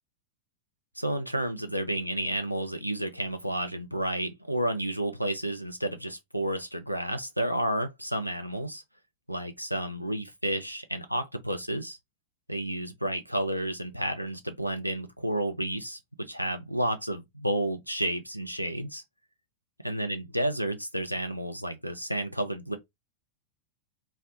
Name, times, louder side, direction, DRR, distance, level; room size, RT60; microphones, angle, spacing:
voice 1, 1.0-8.8 9.3-12.0 12.5-16.0 16.3-19.0 19.8-22.8, right 1 dB, 90° right, 0.4 m, -31 dB
2.4 x 2.0 x 2.7 m
figure-of-eight pair, 90°, 0 cm